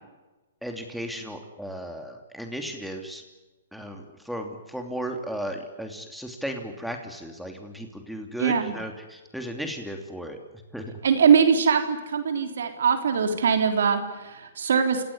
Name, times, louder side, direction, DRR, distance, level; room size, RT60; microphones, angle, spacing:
voice 1, 0.6-3.2 3.7-10.4 10.7-10.9, equal, ahead, 4 dB, 3.0 m, -35 dB
voice 2, 8.4-8.8 11.0-15.0, right 6 dB, 75° right, 6 dB, 3.8 m, -22 dB
28.5 x 17.5 x 9.8 m, 1.2 s
hypercardioid pair, 135°, 0 cm